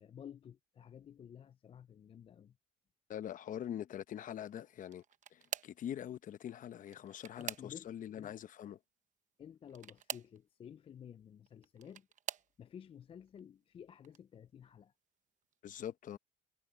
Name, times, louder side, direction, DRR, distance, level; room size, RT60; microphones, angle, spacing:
voice 1, 0.0-2.5 7.4-7.9 8.1-8.3 9.4-12.1 12.6-14.9, left 8 dB, 35° left, 0.4 m, -53 dB
voice 2, 3.1-5.0 5.3-8.8 15.6-16.2, left 10 dB, 50° left, 0.8 m, -43 dB
sound 1, 4.8-5.9 6.8-8.1 9.7-10.4 11.5-12.5 13.3-13.6 14.0-14.2 15.5-15.6, right 9 dB, 45° right, 0.9 m, -45 dB
cardioid pair, 110°, 17 cm